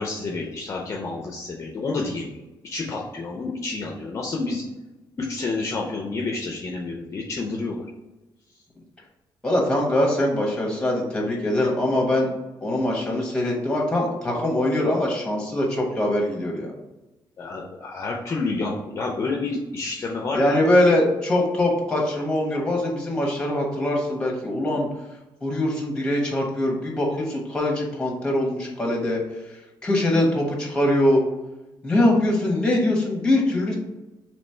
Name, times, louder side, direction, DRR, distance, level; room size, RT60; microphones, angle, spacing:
voice 1, 0.0-4.6 5.2-7.9 17.4-20.7, left 3 dB, 35° left, -1 dB, 0.5 m, -29 dB
voice 2, 9.4-12.3 12.6-16.7 20.3-24.9 25.4-29.2 29.8-31.2 31.8-33.8, left 1 dB, 10° left, -1 dB, 1.1 m, -22 dB
3.2 x 3.0 x 4.3 m, 1.1 s
cardioid pair, 150°, 8 cm